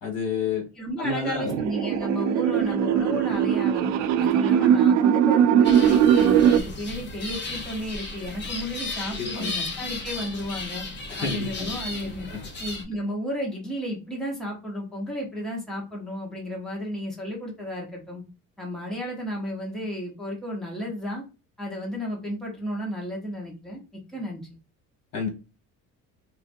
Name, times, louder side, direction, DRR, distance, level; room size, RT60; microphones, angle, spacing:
voice 1, 0.0-0.7 1.0-1.6 2.7-2.8 9.1-9.5 11.1-11.7 12.3-12.5 25.1-25.3, left 5 dB, 75° left, 2 dB, 1.7 m, -30 dB
voice 2, 0.8-10.9 11.2-12.3 12.6-18.2 18.6-21.2 21.6-23.8 24.1-24.5, equal, ahead, -2 dB, 0.9 m, -33 dB
sound 1, 1.4-6.6, right 9 dB, 65° right, 0.4 m, -20 dB
sound 2, 5.6-12.8, left 3 dB, 40° left, 0.8 m, -35 dB
4.5 x 2.5 x 2.6 m, 0.30 s
cardioid pair, 160°, 29 cm